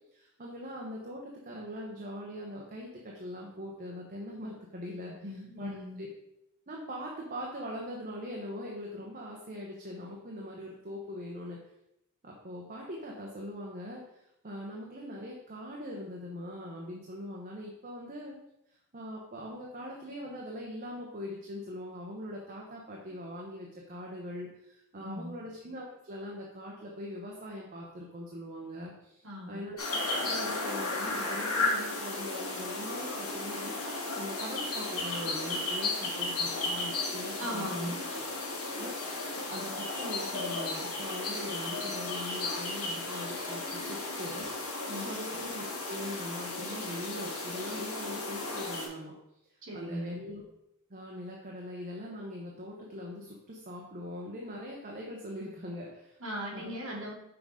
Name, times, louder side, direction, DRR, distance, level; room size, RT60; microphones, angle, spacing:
voice 1, 0.1-5.1 5.6-5.7 6.0-6.1 6.7-11.6 12.2-18.4 18.9-38.2 38.7-44.8 45.0-49.1 49.5-50.4 50.9-56.2 56.5-57.0, equal, 40° right, -2 dB, 0.9 m, -42 dB
voice 2, 5.2-6.0 25.0-25.3 29.2-29.6 37.4-38.0 44.9-45.1 49.6-50.1 56.2-57.1, equal, 60° right, -2 dB, 1.8 m, -38 dB
sound 1, 29.8-48.9, left 2 dB, 80° left, 1.7 m, -34 dB
6.0 x 3.8 x 4.8 m, 0.82 s
head